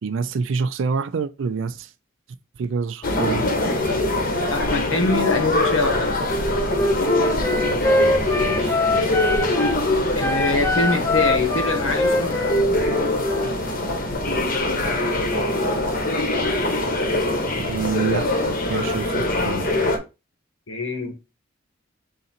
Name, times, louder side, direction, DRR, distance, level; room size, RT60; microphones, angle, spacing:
voice 1, 0.0-1.9 2.6-3.5 8.4-9.3 17.5-19.7, right 5 dB, 70° right, 0.4 m, -27 dB
sound 1, 3.0-20.0, left 1 dB, 45° left, 0.8 m, -23 dB
voice 2, 4.5-6.2 10.1-12.4 20.7-21.1, left 3 dB, 80° left, 1.0 m, -23 dB
Wind instrument woodwind instrument, 6.7-9.8 10.2-13.6, left 1 dB, 15° left, 0.4 m, -24 dB
3.9 x 2.6 x 4.2 m
head